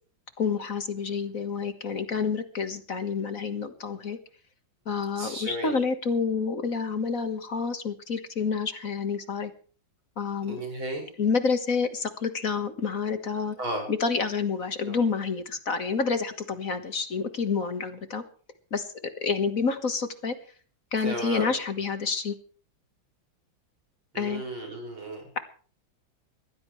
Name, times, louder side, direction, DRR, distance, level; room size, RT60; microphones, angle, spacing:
voice 1, 0.4-4.2 4.9-9.5 10.2-10.6 11.2-13.6 13.9-18.2 18.7-18.9 19.2-20.4 20.9-22.4 24.2-24.4 25.4-25.5, left 5 dB, 45° left, 9 dB, 1.8 m, -28 dB
voice 2, 5.2-5.8 10.4-11.1 13.6-13.8 14.8-15.0 21.0-21.5 24.1-25.3, right 1 dB, 90° right, 2 dB, 6.9 m, -34 dB
21.5 x 16.0 x 3.3 m, 0.42 s
omnidirectional pair, 2.2 m